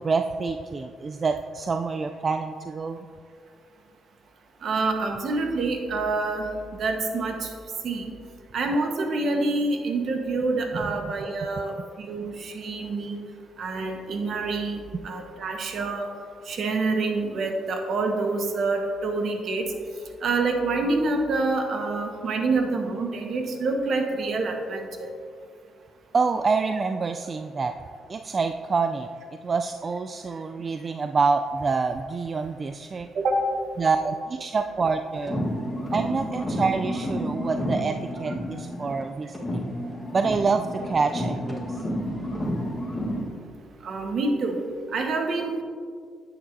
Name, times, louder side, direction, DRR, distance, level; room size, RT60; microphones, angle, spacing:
voice 1, 0.0-3.1 10.7-11.1 14.9-15.0 26.1-27.7 28.1-29.1 29.4-33.1 33.8-35.4 35.9-39.7 40.1-41.8, right 4 dB, 35° right, 7 dB, 0.3 m, -27 dB
voice 2, 4.6-6.5 6.8-7.5 7.8-8.1 8.5-13.2 13.6-16.1 16.5-19.7 20.2-25.1 33.1-33.3 43.8-44.6 44.9-45.6, right 3 dB, 60° right, 3 dB, 1.2 m, -27 dB
sound 1, 35.2-39.1 39.3-43.3, equal, 20° left, 1.3 m, -30 dB
10.0 x 8.7 x 2.7 m, 2.2 s
cardioid pair, 90°, 0 cm